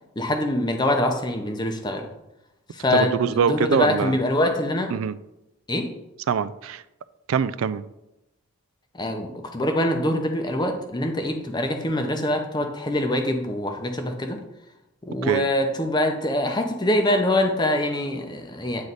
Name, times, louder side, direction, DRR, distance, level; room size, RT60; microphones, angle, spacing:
voice 1, 0.2-2.1 2.7-4.9 5.7-5.9 8.9-14.4 15.0-18.8, left 1 dB, 20° left, 5 dB, 0.6 m, -24 dB
voice 2, 2.9-4.2 4.9-5.2 6.3-6.8 7.3-7.9 15.2-15.5, right 7 dB, 70° right, 16 dB, 0.3 m, -23 dB
9.2 x 3.2 x 4.0 m, 0.91 s
head